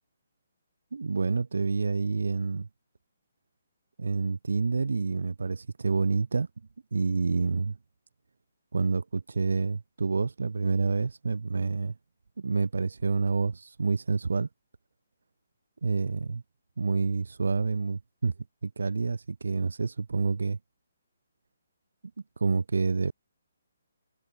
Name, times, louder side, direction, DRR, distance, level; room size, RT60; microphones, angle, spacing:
voice 1, 0.9-2.7 4.0-6.5 6.9-7.8 8.7-12.0 12.4-14.5 15.8-16.4 16.8-18.3 18.6-20.6 22.4-23.1, right 4 dB, 75° right, 5.8 m, -28 dB
figure-of-eight pair, 145°, 0 cm